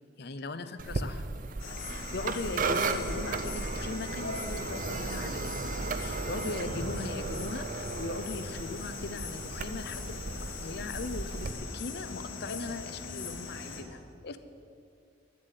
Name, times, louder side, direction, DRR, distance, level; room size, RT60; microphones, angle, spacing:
voice 1, 0.2-1.2 1.8-14.4, left 3 dB, 55° left, 11 dB, 0.6 m, -39 dB
sound 1, 0.8-11.5, right 3 dB, 45° right, 0.5 m, -35 dB
sound 2, 1.6-13.8, left 4 dB, 90° left, 1.7 m, -41 dB
10.5 x 7.6 x 8.3 m, 2.4 s
head